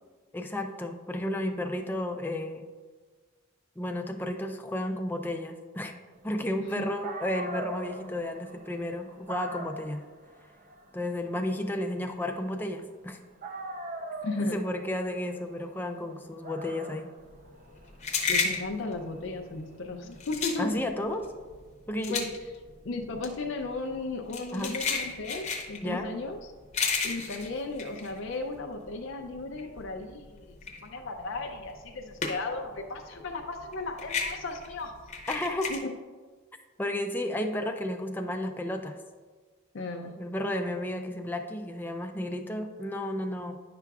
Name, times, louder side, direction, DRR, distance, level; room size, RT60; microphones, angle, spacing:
voice 1, 0.3-2.7 3.8-5.9 6.2-10.0 10.9-13.2 14.4-17.1 20.6-21.2 21.9-22.2 24.5-24.8 25.8-26.1 35.3-35.7 36.8-39.0 40.2-43.5, left 1 dB, 10° left, 4 dB, 0.4 m, -32 dB
Dog, 6.7-6.8 7.0-13.0 13.4-20.2, right 2 dB, 40° right, 0.6 m, -42 dB
voice 2, 14.2-14.6 18.3-20.8 22.1-22.3 22.8-26.4 27.0-34.9 35.7-35.9 39.7-40.1, left 3 dB, 65° left, 3 dB, 0.5 m, -35 dB
sound 1, 17.3-28.9 29.2-32.7 33.0-35.8, left 5 dB, 35° left, 0.8 m, -33 dB
10.0 x 5.8 x 2.3 m, 1.4 s
head